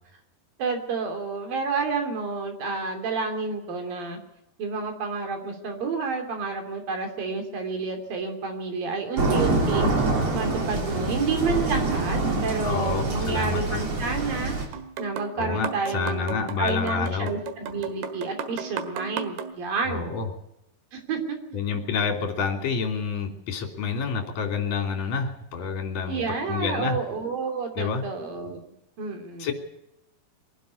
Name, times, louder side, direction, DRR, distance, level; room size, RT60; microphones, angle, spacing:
voice 1, 0.6-4.2 4.6-9.9 10.3-14.6 15.0-20.1 20.9-21.4 26.1-28.6 29.0-29.5, right 4 dB, 65° right, 4 dB, 4.7 m, -30 dB
sound 1, 9.2-14.7, right 2 dB, 40° right, 4.1 m, -25 dB
voice 2, 12.6-13.8 15.4-17.3 19.9-20.3 21.5-27.0 27.8-28.0 29.4-29.5, left 5 dB, 50° left, 4 dB, 4.0 m, -28 dB
sound 2, 14.7-19.5, right 7 dB, 80° right, 3.5 m, -35 dB
23.0 x 12.0 x 9.7 m, 0.83 s
omnidirectional pair, 4.5 m